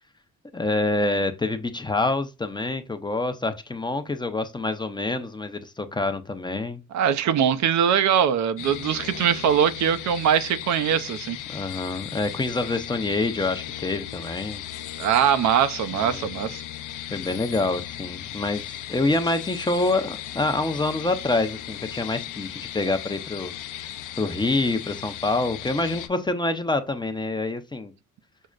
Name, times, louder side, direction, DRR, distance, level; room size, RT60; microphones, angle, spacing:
voice 1, 0.5-6.8 11.5-14.6 15.9-16.3 17.1-23.5 23.8-27.9, left 2 dB, 15° left, 0.5 m, -26 dB
voice 2, 6.9-11.4 15.0-16.6, right 8 dB, 70° right, 0.5 m, -22 dB
sound 1, 8.6-26.1, left 12 dB, 85° left, 0.5 m, -37 dB
6.2 x 2.1 x 2.4 m
cardioid pair, 90°, 30 cm